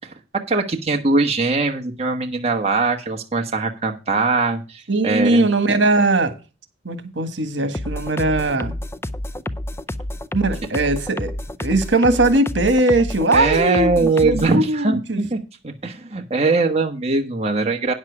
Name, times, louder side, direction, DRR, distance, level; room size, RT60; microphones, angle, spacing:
voice 1, 0.5-5.5 13.3-15.4 15.6-17.9, right 3 dB, 35° right, 1.3 m, -21 dB
voice 2, 4.9-6.3 6.8-8.7 10.3-11.3 11.6-15.2, right 2 dB, 80° right, 1.7 m, -19 dB
sound 1, 7.7-14.6, left 1 dB, 15° left, 0.5 m, -29 dB
9.9 x 7.4 x 4.7 m
head